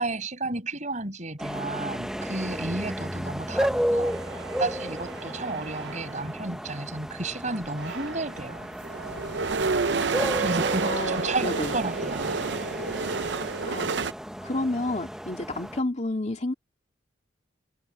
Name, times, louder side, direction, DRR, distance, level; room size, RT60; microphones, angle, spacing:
voice 1, 0.0-8.7 10.4-12.4, right 2 dB, 40° right, 6.0 m, -32 dB
sound 1, 1.4-15.8, equal, 5° right, 0.9 m, -33 dB
sound 2, 4.1-6.3 7.2-7.3 7.6-14.1, right 4 dB, 65° right, 0.7 m, -30 dB
voice 2, 10.9-11.8 13.4-14.0 14.4-16.5, left 2 dB, 40° left, 2.4 m, -31 dB
head